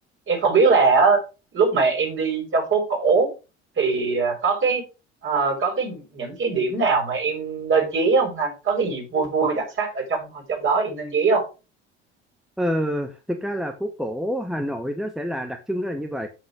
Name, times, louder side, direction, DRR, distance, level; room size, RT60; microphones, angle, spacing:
voice 1, 0.3-1.2 1.5-3.3 3.8-4.8 5.2-11.4, right 4 dB, 35° right, 1 dB, 6.2 m, -21 dB
voice 2, 12.6-16.3, equal, ahead, 6 dB, 1.2 m, -27 dB
8.2 x 7.7 x 5.0 m, 0.30 s
figure-of-eight pair, 60°, 34 cm